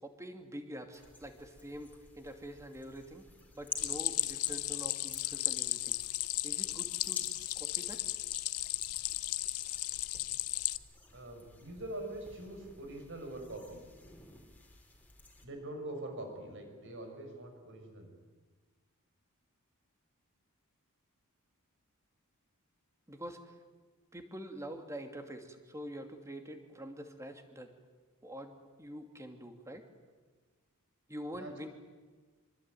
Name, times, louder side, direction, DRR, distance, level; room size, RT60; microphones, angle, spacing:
voice 1, 0.0-3.2 3.5-6.0 6.4-8.0 23.1-23.5 24.1-27.7 28.2-29.8 31.1-31.7, equal, 15° right, 5 dB, 2.6 m, -46 dB
sound 1, 0.9-15.5, left 3 dB, 10° left, 4.4 m, -52 dB
Stream, 3.8-10.8, left 17 dB, 85° left, 1.0 m, -35 dB
voice 2, 11.1-13.8 15.4-18.1 31.3-31.7, right 1 dB, 60° right, 5 dB, 6.0 m, -44 dB
25.5 x 24.5 x 9.3 m, 1.4 s
head